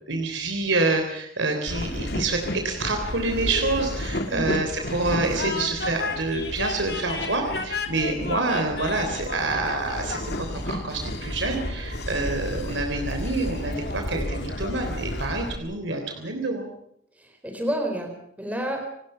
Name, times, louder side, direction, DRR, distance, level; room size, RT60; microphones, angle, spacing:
voice 1, 0.1-16.7, right 2 dB, 75° right, 4 dB, 3.6 m, -27 dB
Train, 1.7-15.6, left 1 dB, 55° left, 2.9 m, -31 dB
voice 2, 17.2-18.8, equal, 10° right, 3 dB, 4.2 m, -30 dB
28.5 x 19.0 x 5.7 m, 0.71 s
head